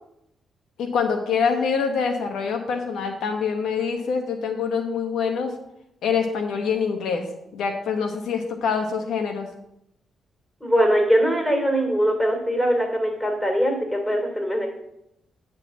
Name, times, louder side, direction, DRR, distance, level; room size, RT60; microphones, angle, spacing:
voice 1, 0.8-5.5 6.0-7.2 7.5-9.5, left 6 dB, 80° left, 4 dB, 1.0 m, -25 dB
voice 2, 10.6-14.7, equal, 10° left, 1 dB, 3.2 m, -21 dB
9.9 x 3.9 x 7.0 m, 0.82 s
cardioid pair, 75°, 0 cm